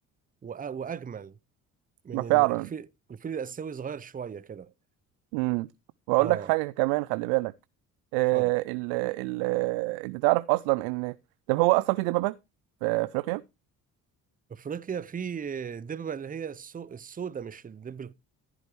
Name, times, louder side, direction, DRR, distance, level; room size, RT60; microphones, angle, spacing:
voice 1, 0.4-1.4 2.0-4.7 6.2-6.5 8.3-8.5 14.5-18.1, right 7 dB, 20° right, 0.6 m, -36 dB
voice 2, 2.1-2.7 5.3-5.7 6.1-7.5 8.1-11.1 11.5-12.4 12.8-13.4, right 23 dB, 75° right, 0.5 m, -25 dB
14.5 x 9.1 x 3.1 m
hypercardioid pair, 50°, 43 cm